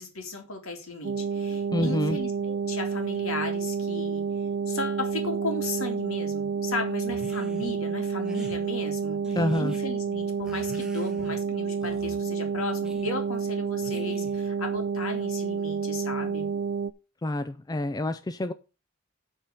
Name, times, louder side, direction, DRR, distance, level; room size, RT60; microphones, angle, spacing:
voice 1, 0.0-4.2 4.7-16.5, left 3 dB, 70° left, 2.6 m, -36 dB
sound 1, 1.0-16.9, right 6 dB, 50° right, 0.5 m, -29 dB
voice 2, 1.7-2.2 9.4-9.7 17.2-18.5, left 1 dB, 20° left, 0.4 m, -27 dB
sound 2, 7.1-7.7 8.2-8.6 9.2-9.8 10.4-11.4 11.8-12.2 12.8-13.1 13.8-14.5, right 1 dB, 5° right, 1.4 m, -43 dB
8.4 x 4.5 x 6.7 m
head